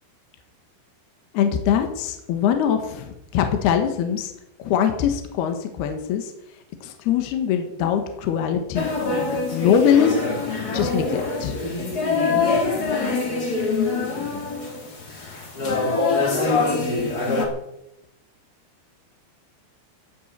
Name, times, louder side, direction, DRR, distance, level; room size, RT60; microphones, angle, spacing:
voice 1, 1.3-4.3 4.6-6.3 6.8-8.9 9.5-10.2 10.7-11.6, left 8 dB, 70° left, 5 dB, 3.2 m, -22 dB
sound 1, 8.7-17.5, left 3 dB, 30° left, 2.2 m, -24 dB
16.0 x 7.3 x 8.9 m, 0.82 s
omnidirectional pair, 5.3 m